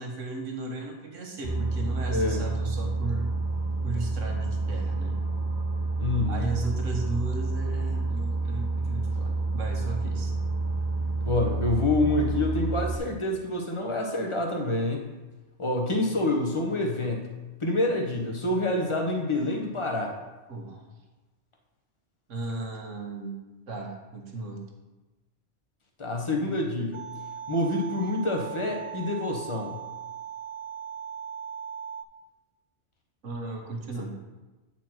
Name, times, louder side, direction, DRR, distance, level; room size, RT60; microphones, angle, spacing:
voice 1, 0.0-3.3 3.8-5.2 6.3-10.3 20.5-20.8 22.3-23.4 23.7-24.6 33.2-34.2, right 2 dB, 90° right, 2 dB, 1.5 m, -35 dB
Boat Water vehicle, 1.4-13.0, right 3 dB, 40° right, 0.8 m, -29 dB
voice 2, 6.0-6.5 11.2-15.0 15.6-17.3 17.6-20.1 26.0-27.0 27.5-29.8, left 2 dB, 25° left, 1 dB, 1.0 m, -27 dB
sound 1, 26.9-32.0, right 8 dB, 55° right, 0.3 m, -39 dB
9.1 x 4.4 x 4.4 m, 1.1 s
omnidirectional pair, 1.2 m